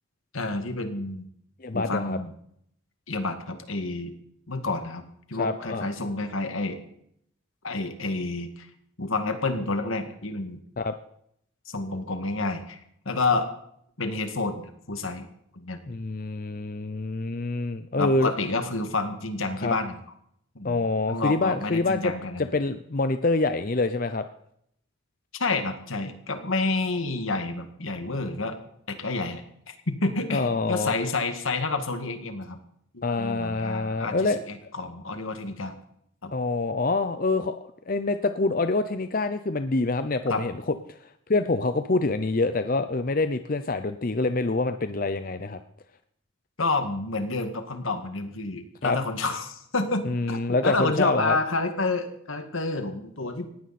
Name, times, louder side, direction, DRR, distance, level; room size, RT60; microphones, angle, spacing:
voice 1, 0.3-1.2 1.7-2.3 3.1-4.2 4.5-6.8 7.6-8.7 9.0-10.6 11.7-12.8 13.1-13.5 14.0-15.3 15.5-15.8 18.0-20.0 20.6-20.8 21.1-22.5 25.4-28.6 28.9-29.4 29.7-32.6 32.9-35.8 36.2-36.3 40.3-40.4 46.6-53.5, left 3 dB, 80° left, 7 dB, 2.0 m, -29 dB
voice 2, 1.6-2.2 5.3-5.9 10.8-10.9 15.9-18.3 19.6-19.7 20.6-22.1 22.4-24.2 30.3-30.9 33.0-34.4 36.3-37.5 37.9-41.0 41.3-45.6 48.8-49.0 50.0-51.4, left 3 dB, 40° left, 10 dB, 0.6 m, -26 dB
19.0 x 15.5 x 4.3 m, 0.71 s
head